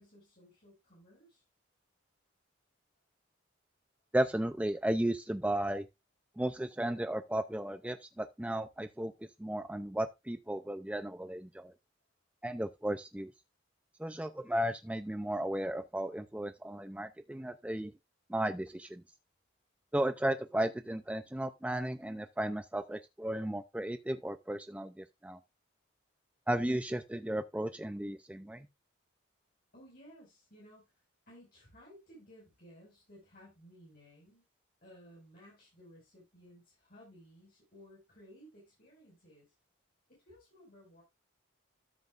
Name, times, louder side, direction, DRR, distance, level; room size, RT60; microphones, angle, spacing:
voice 1, 0.0-1.4 29.7-30.8 31.3-34.4 34.8-39.5 40.1-41.0, equal, 45° left, 5.1 m, -57 dB
voice 2, 4.1-5.8 6.4-9.1 9.4-11.7 12.4-13.3 14.0-17.9 18.3-19.0 19.9-25.4 26.5-28.7, right 1 dB, 5° right, 0.4 m, -34 dB
13.0 x 7.6 x 2.4 m
head